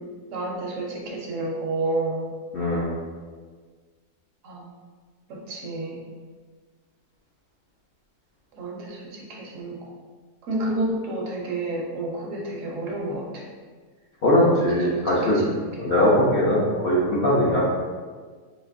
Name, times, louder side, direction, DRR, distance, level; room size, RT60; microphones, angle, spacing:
voice 1, 0.0-2.3 4.4-4.7 5.3-6.0 8.5-9.8 10.4-13.5 14.5-15.7, right 2 dB, 70° right, -1 dB, 0.9 m, -30 dB
voice 2, 2.5-2.9 14.2-15.4 15.8-17.6, left 1 dB, 65° left, -7 dB, 0.6 m, -20 dB
4.3 x 2.7 x 2.5 m, 1.5 s
omnidirectional pair, 1.6 m